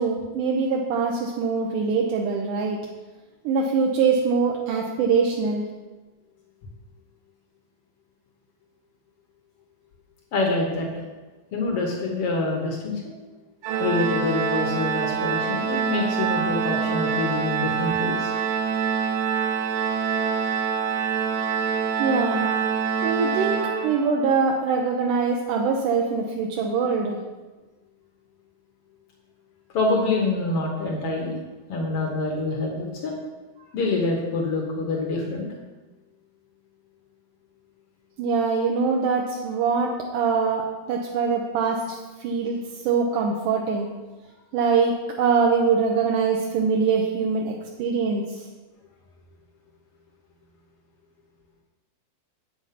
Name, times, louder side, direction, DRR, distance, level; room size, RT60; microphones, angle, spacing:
voice 1, 0.0-2.8 3.4-5.7 22.0-22.5 23.0-27.2 38.2-41.9 42.2-43.9 44.5-48.5, right 5 dB, 75° right, 0 dB, 2.1 m, -23 dB
voice 2, 10.3-11.0 11.5-13.1 13.8-18.3 29.7-31.4 31.7-33.2 33.7-35.5, left 3 dB, 75° left, 0 dB, 1.3 m, -26 dB
Organ, 13.6-24.4, right 6 dB, 90° right, 2.6 m, -25 dB
8.2 x 7.2 x 5.7 m, 1.2 s
omnidirectional pair, 4.3 m